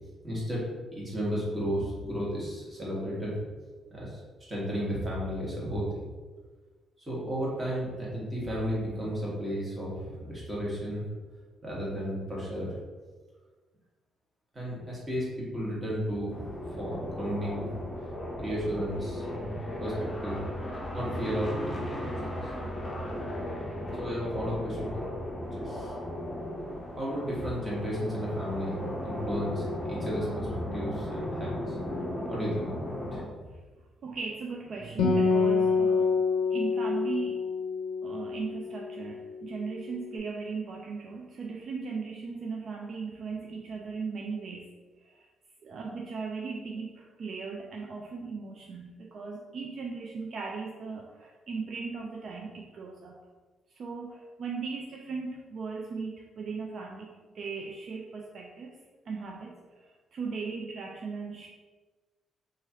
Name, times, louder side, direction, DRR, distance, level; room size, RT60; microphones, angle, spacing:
voice 1, 0.2-3.4 3.9-4.2 4.5-6.0 7.1-11.1 11.6-12.8 14.5-17.7 18.4-20.4 20.9-22.1 22.4-22.5 23.9-25.2 25.5-25.9 27.0-31.8 32.3-32.9 33.1-33.2, equal, 25° right, -6 dB, 1.3 m, -33 dB
sound 1, 16.3-33.2, left 1 dB, 25° left, 0.5 m, -36 dB
voice 2, 34.0-36.1 36.5-37.5 38.0-44.7 45.0-45.3 45.6-53.2 53.7-57.1 57.3-58.7 59.1-61.5, right 4 dB, 55° right, -1 dB, 0.3 m, -37 dB
Acoustic guitar, 35.0-38.7, left 4 dB, 90° left, 0.5 m, -26 dB
3.0 x 2.4 x 2.8 m, 1.3 s
cardioid pair, 90°, 0 cm